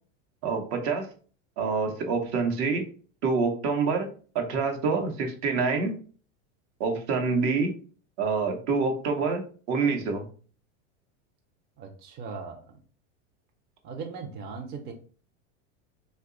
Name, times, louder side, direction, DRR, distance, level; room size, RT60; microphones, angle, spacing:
voice 1, 0.4-1.1 1.6-2.8 3.2-4.1 4.3-5.9 6.8-7.7 8.2-9.4 9.7-10.3, right 4 dB, 60° right, 5 dB, 0.9 m, -26 dB
voice 2, 11.8-12.8 13.8-14.9, right 5 dB, 25° right, 3 dB, 0.5 m, -38 dB
2.9 x 2.2 x 3.7 m, 0.42 s
supercardioid pair, 120°, 37 cm